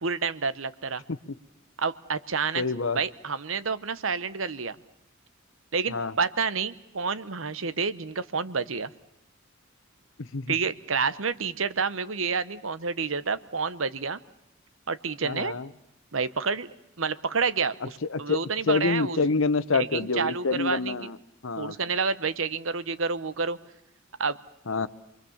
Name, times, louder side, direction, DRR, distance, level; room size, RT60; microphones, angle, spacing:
voice 1, 0.0-1.0 1.8-2.6 2.9-4.8 5.7-8.9 10.5-14.2 14.9-15.5 16.1-16.7 17.0-19.2 19.7-21.0 21.6-23.6 24.2-24.4, right 5 dB, 80° right, 15 dB, 1.0 m, -29 dB
voice 2, 2.6-3.0 5.9-6.1 10.2-10.6 15.2-15.7 18.0-18.4 18.7-21.2 21.4-21.8 24.7-24.9, left 4 dB, 80° left, 14 dB, 1.0 m, -27 dB
28.0 x 22.5 x 7.2 m, 0.85 s
head